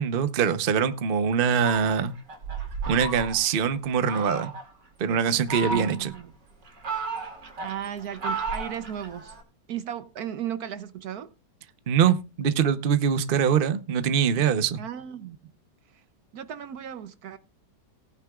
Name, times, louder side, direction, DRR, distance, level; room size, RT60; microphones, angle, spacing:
voice 1, 0.0-2.2 2.9-4.5 5.0-6.1 11.9-14.8, right 7 dB, 45° right, 0.8 m, -23 dB
Fowl, 1.5-3.6 4.1-4.7 5.3-6.2 6.6-9.4, right 3 dB, 80° right, 3.1 m, -34 dB
voice 2, 5.7-6.3 7.6-9.4 9.7-11.3 14.8-15.5 16.3-17.4, right 10 dB, 65° right, 1.1 m, -35 dB
18.5 x 9.5 x 2.4 m
omnidirectional pair, 1.9 m